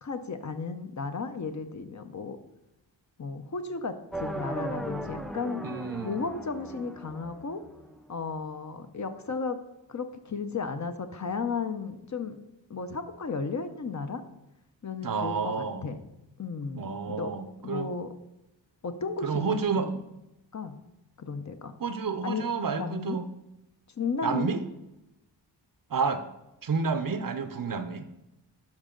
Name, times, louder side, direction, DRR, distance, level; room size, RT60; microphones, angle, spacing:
voice 1, 0.0-2.4 3.2-5.6 6.0-7.6 8.1-9.6 9.9-12.4 12.7-14.2 14.8-16.0 16.4-17.3 17.6-18.1 18.8-20.0 20.5-20.8 21.2-21.7 22.2-22.4 22.8-23.2 24.0-24.6, left 4 dB, 40° left, 8 dB, 0.6 m, -34 dB
sound 1, 4.1-8.1, right 1 dB, ahead, 0.4 m, -38 dB
voice 2, 5.6-6.2 15.0-15.9 16.8-17.9 19.2-19.9 21.8-23.3 24.2-24.6 25.9-26.2 26.6-28.1, right 5 dB, 50° right, 10 dB, 0.6 m, -30 dB
12.0 x 5.1 x 3.8 m, 0.93 s
wide cardioid pair, 105°, 45 cm